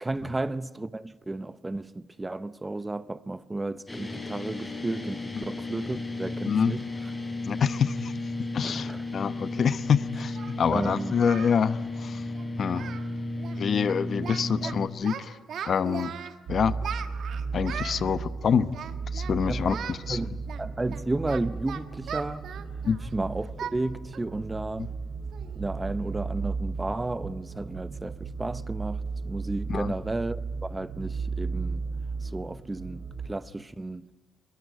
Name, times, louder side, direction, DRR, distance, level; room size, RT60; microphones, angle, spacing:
voice 1, 0.0-6.9 8.6-9.0 10.7-11.1 14.6-14.7 18.1-18.2 19.5-19.8 20.1-20.3 20.6-22.5 23.1-24.9 25.6-31.8 32.2-34.0, right 2 dB, 15° right, 0.8 m, -33 dB
sound 1, 3.9-14.9, left 2 dB, 15° left, 6.3 m, -34 dB
voice 2, 7.5-8.1 8.5-12.2 12.6-12.9 13.6-15.3 15.6-16.1 16.5-16.7 17.5-18.7 19.1-20.2 22.8-23.0 29.7-29.9, left 7 dB, 55° left, 1.0 m, -26 dB
Singing, 9.5-9.6 10.4-11.6 11.8-12.1 12.4-12.5 12.7-13.1 13.4-13.6 13.9-14.7 15.0-16.4 16.8-18.0 18.7-19.4 19.7-20.0 20.5-23.1 23.6-23.8 24.1-24.3 24.7-24.8 25.3-25.6, right 8 dB, 65° right, 1.5 m, -38 dB
sound 2, 16.5-33.3, right 4 dB, 85° right, 4.5 m, -35 dB
22.5 x 22.0 x 9.4 m
cardioid pair, 90°, 0 cm